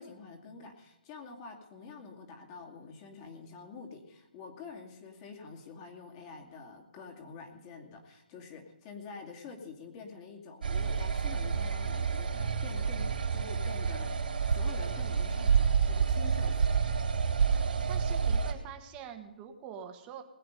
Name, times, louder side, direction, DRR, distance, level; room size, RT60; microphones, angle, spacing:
voice 1, 0.0-14.1 14.5-16.7, left 4 dB, 30° left, 2 dB, 2.5 m, -47 dB
sound 1, 10.6-18.5, right 6 dB, 70° right, 3.7 m, -29 dB
voice 2, 17.5-20.2, right 8 dB, 20° right, 5 dB, 1.6 m, -46 dB
20.0 x 8.6 x 5.3 m, 1.0 s
hypercardioid pair, 155°, 5 cm